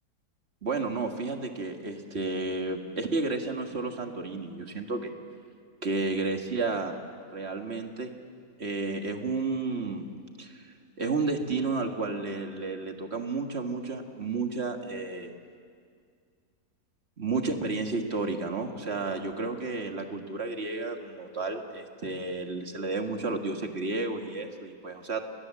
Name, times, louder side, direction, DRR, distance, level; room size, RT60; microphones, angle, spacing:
voice 1, 0.6-5.1 5.8-6.9 7.3-8.1 8.6-10.1 10.4-15.3 17.2-25.2, right 3 dB, 40° right, 4 dB, 2.0 m, -32 dB
29.0 x 20.5 x 7.6 m, 2.2 s
omnidirectional pair, 1.7 m